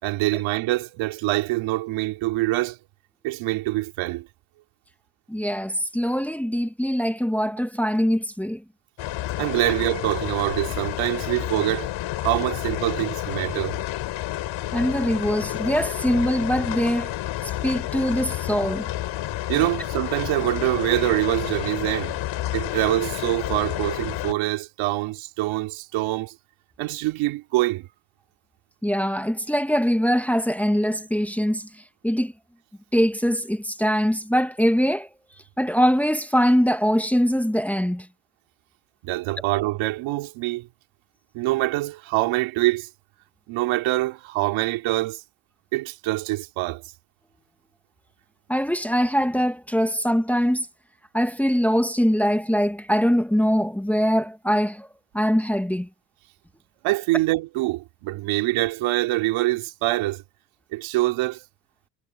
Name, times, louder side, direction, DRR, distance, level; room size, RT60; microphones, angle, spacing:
voice 1, 0.0-2.8 3.2-4.3 9.4-11.9 12.2-13.8 19.5-22.1 22.5-26.3 26.8-27.9 39.0-40.7 41.3-42.9 43.5-45.2 45.7-46.8 56.8-60.2 60.7-61.4, right 18 dB, 85° right, 2.5 m, -25 dB
voice 2, 5.3-8.6 14.7-17.2 17.6-18.9 28.8-31.7 32.0-32.3 32.9-35.1 35.6-38.1 48.5-50.7 51.1-54.9 55.1-55.9, equal, 5° left, 1.2 m, -22 dB
sound 1, 9.0-24.3, left 14 dB, 70° left, 4.1 m, -30 dB
cardioid pair, 105°, 46 cm